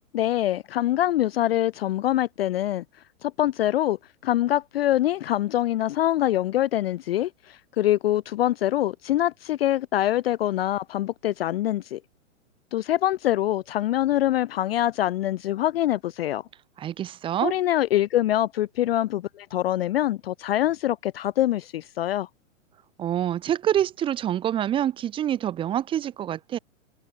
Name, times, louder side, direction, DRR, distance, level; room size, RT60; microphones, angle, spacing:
voice 1, 0.1-2.8 3.2-12.0 12.7-16.4 17.4-22.3, left 13 dB, 50° left, 0.4 m, -24 dB
voice 2, 16.8-17.5 23.0-26.6, right 10 dB, 15° right, 0.7 m, -26 dB
hypercardioid pair, 135°, 40 cm